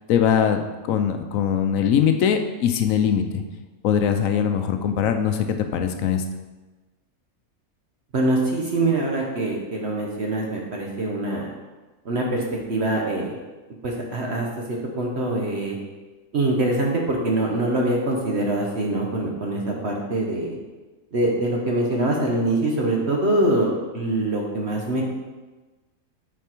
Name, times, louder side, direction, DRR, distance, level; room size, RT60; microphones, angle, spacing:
voice 1, 0.1-3.4 3.8-6.2, left 8 dB, 70° left, 7 dB, 1.0 m, -21 dB
voice 2, 8.1-11.5 12.0-12.4 12.7-13.3 13.8-15.8 16.3-20.6 21.1-25.0, right 2 dB, 50° right, -1 dB, 1.0 m, -24 dB
6.8 x 4.2 x 4.5 m, 1.2 s
omnidirectional pair, 1.5 m